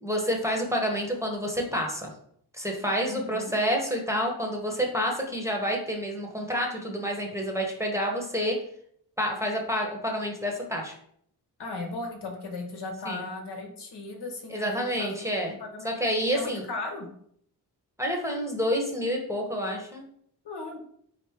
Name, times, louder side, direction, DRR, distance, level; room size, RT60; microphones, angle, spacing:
voice 1, 0.0-2.1 2.6-8.6 9.2-10.9 13.1-13.3 14.5-15.5 15.8-16.6 18.0-20.0, equal, 5° right, 1 dB, 0.8 m, -28 dB
voice 2, 3.1-3.5 11.6-15.2 15.6-15.9 16.3-17.1 20.4-20.8, left 3 dB, 80° left, 2 dB, 1.0 m, -36 dB
4.0 x 2.9 x 3.5 m, 0.66 s
wide cardioid pair, 85°, 40 cm